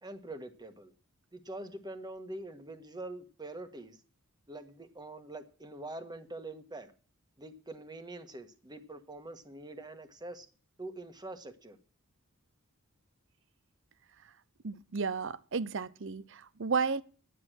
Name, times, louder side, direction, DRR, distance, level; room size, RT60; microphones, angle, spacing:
voice 1, 0.0-0.9 1.3-4.0 4.5-6.9 7.4-10.5 10.8-11.8, right 2 dB, 20° right, 1.5 m, -44 dB
voice 2, 14.6-17.0, right 5 dB, 60° right, 0.7 m, -33 dB
12.0 x 10.0 x 6.3 m
head